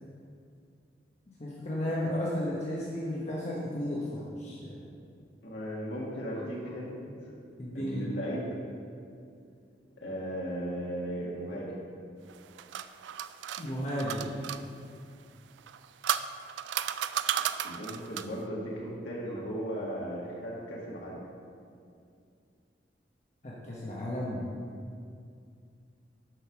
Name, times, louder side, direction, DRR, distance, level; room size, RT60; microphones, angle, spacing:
voice 1, 1.4-4.9 7.6-8.1 13.6-14.4 23.4-24.4, left 1 dB, 40° left, -5 dB, 1.0 m, -34 dB
voice 2, 5.4-7.3 7.7-8.5 10.0-11.8 17.6-21.2, equal, 80° left, -5 dB, 1.7 m, -36 dB
sound 1, 12.3-14.6 15.6-18.4, right 10 dB, 85° right, 0.3 m, -34 dB
7.8 x 5.3 x 5.9 m, 2.4 s
head